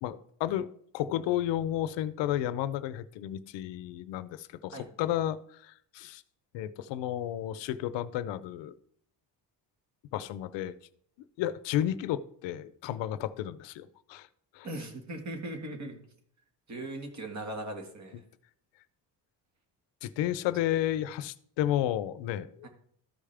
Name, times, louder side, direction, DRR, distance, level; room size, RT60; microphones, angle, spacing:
voice 1, 0.0-0.7 0.9-6.2 6.5-8.7 10.1-10.7 11.4-14.3 14.5-14.7 20.0-22.7, left 12 dB, 85° left, 14 dB, 0.6 m, -32 dB
voice 2, 14.6-16.0 16.7-18.2 22.6-22.7, right 1 dB, 40° right, 4 dB, 1.8 m, -39 dB
13.5 x 5.0 x 3.4 m, 0.64 s
cardioid pair, 140°, 43 cm